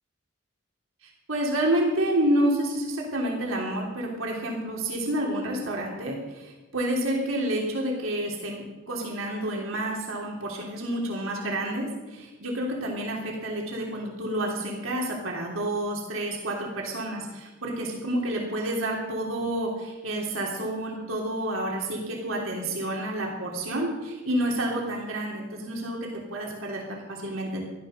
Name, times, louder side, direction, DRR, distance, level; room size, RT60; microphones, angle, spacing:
voice 1, 1.3-27.6, right 1 dB, 85° right, -1 dB, 3.3 m, -29 dB
14.5 x 12.0 x 6.7 m, 1.2 s
head